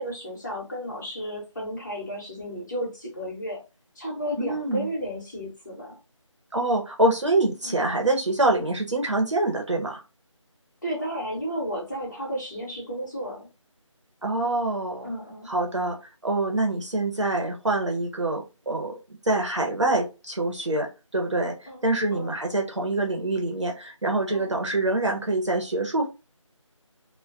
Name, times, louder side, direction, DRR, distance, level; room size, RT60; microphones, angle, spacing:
voice 1, 0.0-3.6 3.9-6.0 7.6-7.9 10.8-13.5 15.0-15.5 21.7-21.8 22.1-22.3 24.3-24.5, equal, 35° left, -2 dB, 1.0 m, -33 dB
voice 2, 4.4-4.9 6.5-10.0 14.2-15.1 15.5-16.0 16.2-18.9 19.2-21.5 21.8-26.1, right 2 dB, 60° right, 2 dB, 0.7 m, -25 dB
2.3 x 2.1 x 3.9 m, 0.29 s
figure-of-eight pair, 165°, 17 cm